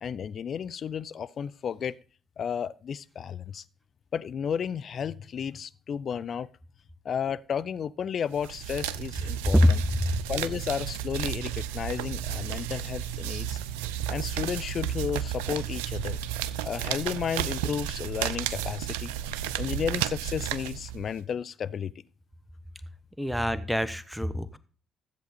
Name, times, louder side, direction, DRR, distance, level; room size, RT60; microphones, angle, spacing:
voice 1, 0.0-2.0 2.4-3.6 4.1-6.5 7.0-9.8 10.3-13.6 14.1-16.2 16.6-19.1 19.6-21.9, left 7 dB, 50° left, 0.5 m, -33 dB
sound 1, 8.3-21.2, right 11 dB, 80° right, 0.4 m, -32 dB
voice 2, 9.5-10.0 23.2-24.6, left 1 dB, ahead, 1.1 m, -24 dB
13.5 x 8.0 x 4.3 m
hypercardioid pair, 45°, 0 cm